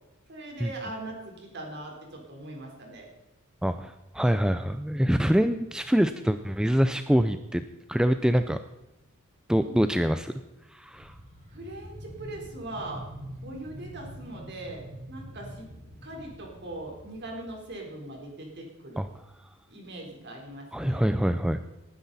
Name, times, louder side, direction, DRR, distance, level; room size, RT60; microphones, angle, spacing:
voice 1, 0.3-3.1 9.5-9.8 11.5-13.0 13.4-15.7 16.0-19.0 19.7-21.0, right 1 dB, 50° right, 0 dB, 3.9 m, -40 dB
voice 2, 3.6-7.6 7.9-8.6 9.5-10.3 10.7-11.1 19.0-19.1 20.7-21.6, equal, 5° right, 10 dB, 0.3 m, -25 dB
sound 1, 10.9-17.7 18.2-18.3, equal, 30° right, 4.8 m, -45 dB
18.5 x 9.9 x 4.1 m, 1.0 s
head